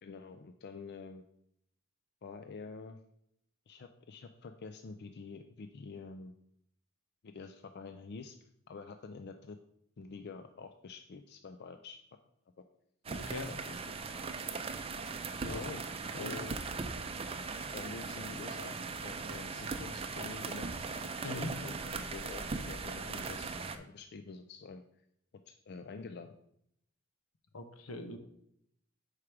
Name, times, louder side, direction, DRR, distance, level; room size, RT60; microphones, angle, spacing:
voice 1, 0.0-1.2 2.2-3.0 3.7-6.3 7.2-8.4 8.7-9.6 10.0-12.0 13.5-13.8 15.4-15.8 16.1-16.6 17.6-18.8 19.0-20.9 21.2-24.8 25.5-26.3, left 4 dB, 50° left, 7 dB, 0.4 m, -47 dB
sound 1, 13.0-23.8, right 4 dB, 30° right, 0.5 m, -39 dB
voice 2, 13.1-13.5 15.5-15.6 16.2-16.3 21.2-21.5 27.5-28.2, left 2 dB, 80° left, 6 dB, 0.9 m, -41 dB
4.9 x 4.8 x 5.8 m, 0.73 s
head